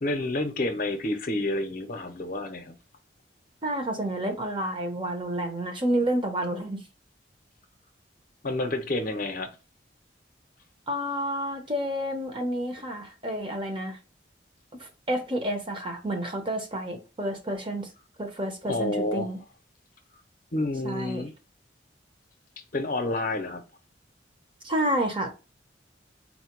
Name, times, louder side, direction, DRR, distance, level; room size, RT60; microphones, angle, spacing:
voice 1, 0.0-2.8 8.4-9.6 18.7-19.3 20.5-21.3 22.7-23.6, left 2 dB, 50° left, 0.7 m, -29 dB
voice 2, 3.6-6.8 10.9-14.0 14.8-17.9 18.2-19.4 20.8-21.2 24.6-25.3, right 1 dB, 30° right, 0.9 m, -29 dB
4.2 x 2.2 x 4.4 m
head